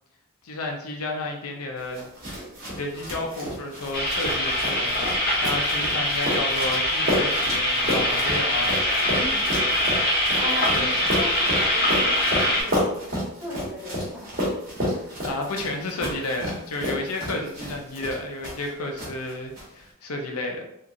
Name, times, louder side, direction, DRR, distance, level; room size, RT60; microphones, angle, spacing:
voice 1, 0.4-2.0 2.7-8.7 10.7-11.0 14.9-20.6, left 2 dB, 85° left, 2 dB, 0.5 m, -31 dB
sound 1, 1.9-18.7 19.0-19.6, equal, 40° right, 1.1 m, -31 dB
sound 2, 3.9-12.6, left 1 dB, 45° left, 0.7 m, -23 dB
voice 2, 9.1-9.5 10.4-12.9 13.3-14.3, left 1 dB, 5° right, -8 dB, 1.0 m, -36 dB
2.8 x 2.5 x 2.5 m, 0.77 s
head